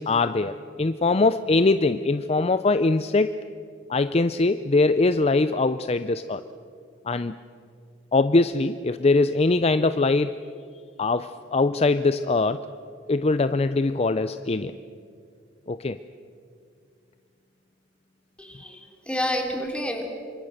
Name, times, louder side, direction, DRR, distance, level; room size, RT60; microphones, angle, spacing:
voice 1, 0.0-3.4 3.9-6.4 7.1-7.3 8.1-10.4 11.0-12.7 13.1-14.8 15.7-16.0, left 3 dB, 35° left, 12 dB, 0.5 m, -22 dB
voice 2, 18.4-20.0, equal, 5° left, 2 dB, 3.5 m, -29 dB
27.5 x 25.0 x 6.6 m, 2.3 s
head